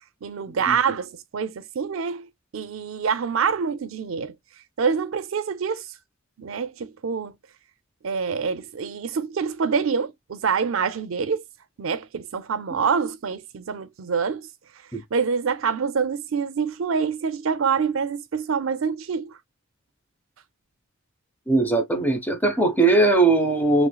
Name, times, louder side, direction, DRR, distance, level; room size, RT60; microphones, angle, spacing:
voice 1, 0.2-4.4 4.8-5.9 6.4-7.3 8.0-11.4 11.8-14.5 15.1-19.4, right 6 dB, 75° right, 0.5 m, -26 dB
voice 2, 21.5-23.9, right 2 dB, 10° left, 0.6 m, -20 dB
3.1 x 3.1 x 2.2 m
head